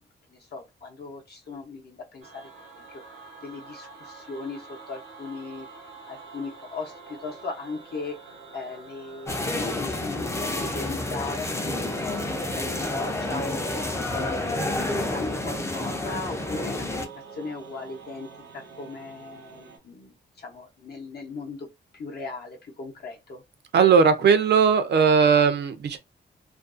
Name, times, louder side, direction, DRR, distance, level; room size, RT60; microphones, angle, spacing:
voice 1, 0.3-2.4 3.4-5.7 6.1-8.1 8.5-12.0 12.5-13.6 14.1-14.9 15.1-18.3 18.5-21.7 21.9-23.4, left 4 dB, 55° left, 0.7 m, -38 dB
sound 1, 2.2-19.8, right 5 dB, 90° right, 1.0 m, -45 dB
sound 2, 9.3-17.1, left 2 dB, 15° left, 0.4 m, -29 dB
voice 2, 23.7-26.0, right 6 dB, 60° right, 0.4 m, -18 dB
2.5 x 2.3 x 2.4 m
wide cardioid pair, 125°, 20 cm